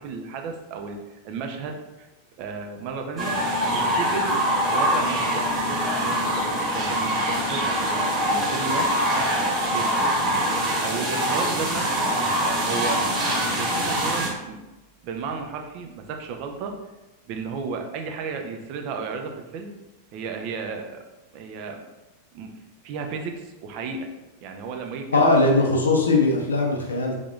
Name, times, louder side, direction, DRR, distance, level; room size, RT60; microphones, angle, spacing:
voice 1, 0.0-2.1 2.4-4.4 4.7-6.5 6.7-10.1 10.8-12.1 12.4-13.1 13.6-14.6 15.0-16.8 17.3-19.7 20.1-21.0 21.3-21.8 22.3-22.5 22.8-24.1 24.4-25.3, right 5 dB, 45° right, 4 dB, 0.4 m, -33 dB
sound 1, 3.2-14.3, equal, 25° right, 1.0 m, -24 dB
voice 2, 25.1-27.2, left 2 dB, 75° left, 1 dB, 0.6 m, -20 dB
3.4 x 3.3 x 2.4 m, 1.1 s
figure-of-eight pair, 90°, 0 cm